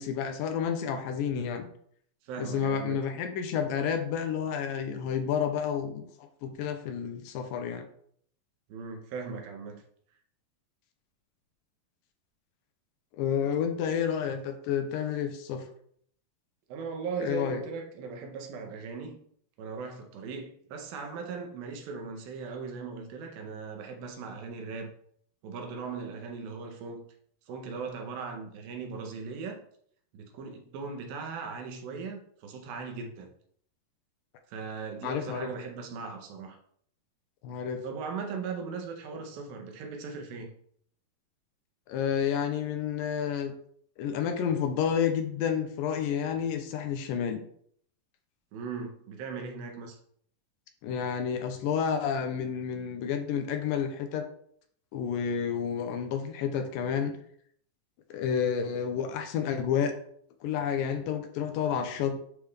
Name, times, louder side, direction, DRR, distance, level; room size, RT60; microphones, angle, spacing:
voice 1, 0.0-1.7 2.4-7.9 13.2-15.7 17.2-17.6 35.0-35.5 37.4-37.8 41.9-43.5 44.0-47.4 50.8-54.3 54.9-57.2 58.1-60.0 60.4-62.2, left 7 dB, 85° left, 6 dB, 2.3 m, -30 dB
voice 2, 2.2-3.0 8.7-9.8 16.7-19.2 19.6-24.9 25.4-27.1 27.5-29.6 30.1-33.3 34.5-36.6 37.8-40.5 48.5-50.0, right 5 dB, 85° right, 3 dB, 2.8 m, -38 dB
9.9 x 3.4 x 3.2 m, 0.63 s
omnidirectional pair, 4.0 m